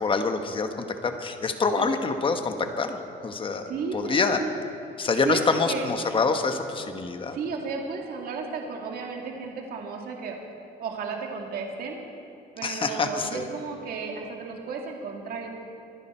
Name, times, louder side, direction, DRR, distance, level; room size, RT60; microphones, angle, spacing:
voice 1, 0.0-3.0 3.2-4.4 5.0-7.4 12.6-13.5, left 4 dB, 30° left, 7 dB, 1.3 m, -26 dB
voice 2, 3.7-4.6 5.0-5.9 7.3-10.4 10.8-12.0 12.6-15.5, right 4 dB, 65° right, 1 dB, 2.2 m, -33 dB
25.0 x 10.5 x 4.4 m, 2.8 s
cardioid pair, 110°, 17 cm